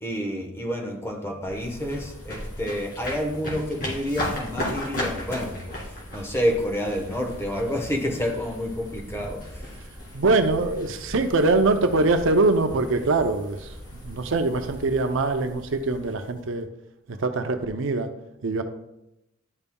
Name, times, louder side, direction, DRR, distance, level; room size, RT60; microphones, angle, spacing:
voice 1, 0.0-9.8, equal, 15° left, 1 dB, 1.1 m, -29 dB
sound 1, 1.4-16.6, left 1 dB, 45° left, 2.4 m, -37 dB
voice 2, 10.1-13.7 14.0-16.7 17.1-18.1 18.4-18.6, right 3 dB, 70° right, 7 dB, 0.6 m, -23 dB
11.0 x 5.3 x 2.3 m, 0.88 s
head